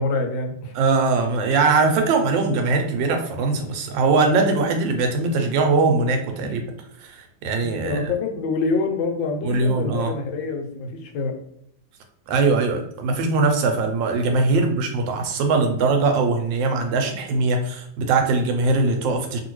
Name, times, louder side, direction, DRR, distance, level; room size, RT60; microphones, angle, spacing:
voice 1, 0.0-0.7 6.4-6.5 7.4-11.3 14.4-14.8, left 3 dB, 85° left, 3 dB, 1.4 m, -26 dB
voice 2, 0.8-6.6 7.0-8.1 9.4-10.1 12.3-19.4, right 3 dB, 85° right, 4 dB, 1.3 m, -21 dB
2.9 x 2.7 x 3.0 m, 0.72 s
omnidirectional pair, 2.0 m